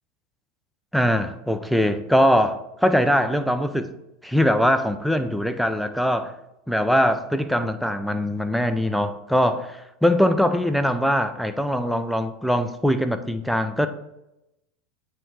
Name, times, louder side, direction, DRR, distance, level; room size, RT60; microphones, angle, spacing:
voice 1, 0.9-3.9 4.2-6.3 6.7-13.9, equal, ahead, 0.5 m, -22 dB
8.5 x 3.3 x 3.4 m
hypercardioid pair, 95°, 0 cm